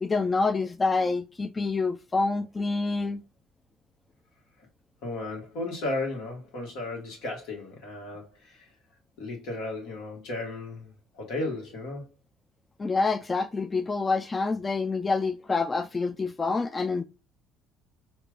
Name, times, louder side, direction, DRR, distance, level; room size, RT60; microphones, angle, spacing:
voice 1, 0.0-3.2 12.8-17.0, left 3 dB, 25° left, 0.3 m, -27 dB
voice 2, 5.0-8.7 9.2-12.0, left 2 dB, 70° left, 1.6 m, -35 dB
4.5 x 2.6 x 2.3 m
hypercardioid pair, 60°, 0 cm